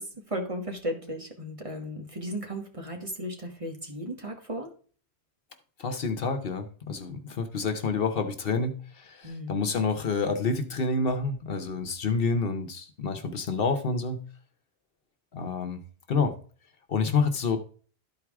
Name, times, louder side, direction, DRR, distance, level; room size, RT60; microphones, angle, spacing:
voice 1, 0.0-4.7 9.2-9.5, equal, 30° right, 2 dB, 1.5 m, -35 dB
voice 2, 5.8-14.2 15.3-15.8 16.1-16.3 16.9-17.6, left 4 dB, 65° left, 8 dB, 1.1 m, -28 dB
12.5 x 4.7 x 3.5 m, 0.41 s
omnidirectional pair, 1.1 m